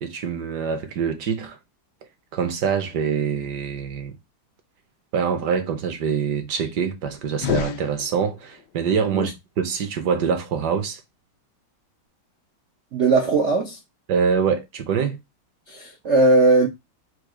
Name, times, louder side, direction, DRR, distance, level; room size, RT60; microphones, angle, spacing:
voice 1, 0.0-1.6 2.3-4.1 5.1-11.0 14.1-15.2, right 6 dB, 65° right, 1.1 m, -25 dB
sound 1, 7.3-8.6, left 11 dB, 75° left, 1.0 m, -29 dB
voice 2, 12.9-13.8 15.7-16.7, right 2 dB, 80° right, 0.6 m, -18 dB
4.6 x 2.4 x 4.9 m
omnidirectional pair, 2.4 m